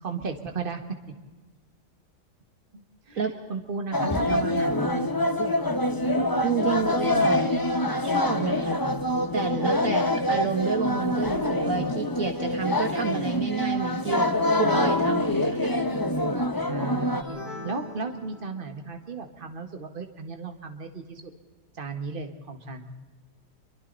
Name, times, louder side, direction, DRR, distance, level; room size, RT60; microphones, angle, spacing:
voice 1, 0.0-0.8 2.7-5.1 16.7-21.3 21.7-22.9, right 4 dB, 30° right, 5 dB, 1.9 m, -35 dB
sound 1, 3.9-17.2, left 1 dB, 15° left, 0.9 m, -25 dB
voice 2, 6.4-7.4 8.0-8.8 9.3-14.3 14.6-15.8 16.6-16.7, right 5 dB, 55° right, 5 dB, 1.8 m, -29 dB
sound 2, 17.1-19.0, left 2 dB, 85° left, 5.8 m, -41 dB
27.0 x 23.5 x 4.1 m, 1.3 s
omnidirectional pair, 1.8 m